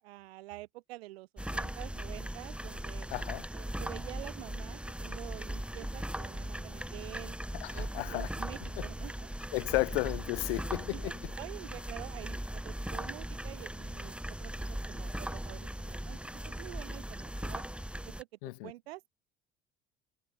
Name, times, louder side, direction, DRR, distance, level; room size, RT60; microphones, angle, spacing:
voice 1, 0.0-3.1 3.5-7.4 7.7-9.3 10.7-17.6 18.0-18.3 18.6-19.1, right 18 dB, 90° right, 7.7 m, -48 dB
sound 1, 1.4-18.2, right 1 dB, 5° right, 4.5 m, -39 dB
voice 2, 3.1-3.5 7.6-8.3 9.5-11.3 18.4-18.7, left 23 dB, 85° left, 1.5 m, -33 dB
hypercardioid pair, 70°, 30 cm